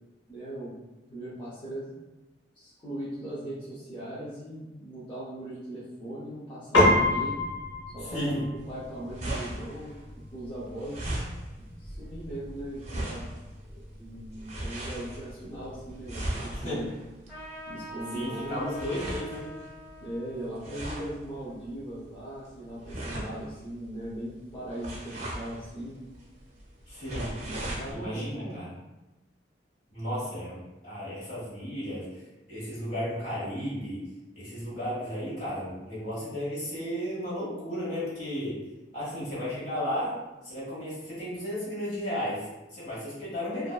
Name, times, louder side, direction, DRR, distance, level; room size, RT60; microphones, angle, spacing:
voice 1, 0.3-0.7 1.1-1.9 2.5-7.4 7.9-8.4 8.7-10.0 10.3-11.2 11.6-13.3 14.0-16.9 17.7-18.8 20.0-26.0 27.4-28.6, right 1 dB, 25° left, -11 dB, 0.5 m, -39 dB
Piano, 6.7-16.3, left 1 dB, 85° left, 0.9 m, -31 dB
voice 2, 8.0-8.5 16.5-16.9 18.1-19.6 26.9-27.4 27.9-28.7 29.9-32.2 32.5-34.0 34.3-38.6 38.9-43.7, equal, 45° left, -9 dB, 1.2 m, -34 dB
sound 1, 8.6-27.9, right 1 dB, 35° right, 0.5 m, -39 dB
Trumpet, 17.3-22.3, right 1 dB, 5° left, 1.0 m, -45 dB
2.5 x 2.2 x 2.3 m, 1.0 s
head